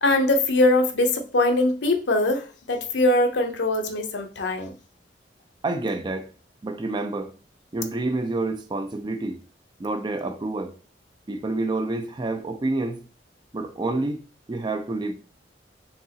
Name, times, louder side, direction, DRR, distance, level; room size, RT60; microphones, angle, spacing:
voice 1, 0.0-4.7, left 2 dB, 75° left, 0.7 m, -22 dB
voice 2, 5.6-6.3 6.6-7.3 7.7-9.4 9.8-10.7 11.3-13.0 13.5-14.2 14.5-15.1, right 2 dB, 25° right, 0.4 m, -28 dB
5.3 x 2.9 x 2.8 m
head